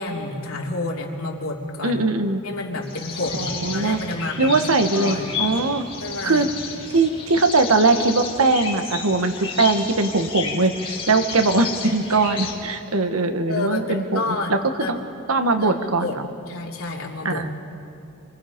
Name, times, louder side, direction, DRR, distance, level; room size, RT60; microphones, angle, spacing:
voice 1, 0.0-2.0 2.4-4.5 4.9-5.3 6.0-6.5 13.5-14.9 15.6-16.2 16.5-17.4, left 2 dB, 80° left, -2 dB, 3.1 m, -29 dB
voice 2, 1.8-2.4 3.3-4.0 4.4-5.8 6.2-6.5 6.9-14.6 14.9-15.0 15.3-16.2 17.2-17.5, right 3 dB, 80° right, 7 dB, 1.4 m, -21 dB
sound 1, 2.8-12.5, left 5 dB, 25° left, 2.5 m, -32 dB
27.0 x 24.0 x 5.2 m, 2.7 s
head